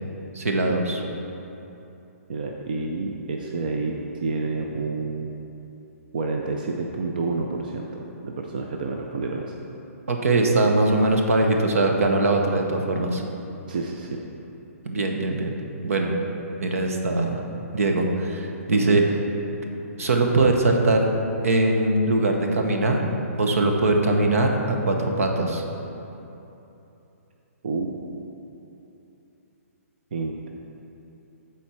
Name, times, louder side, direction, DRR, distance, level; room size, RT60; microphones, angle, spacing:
voice 1, 0.3-1.0 10.1-13.2 14.8-15.5 15.8-16.1 16.6-17.4 17.7-19.0 20.0-21.1 21.4-23.0 23.4-25.6, right 2 dB, 65° right, 2 dB, 1.0 m, -21 dB
voice 2, 2.3-5.3 6.1-9.6 13.7-14.2 18.7-19.0 27.6-27.9 30.1-30.5, right 3 dB, 35° right, 1 dB, 0.4 m, -29 dB
7.3 x 4.4 x 6.2 m, 2.9 s
hypercardioid pair, 180°, 8 cm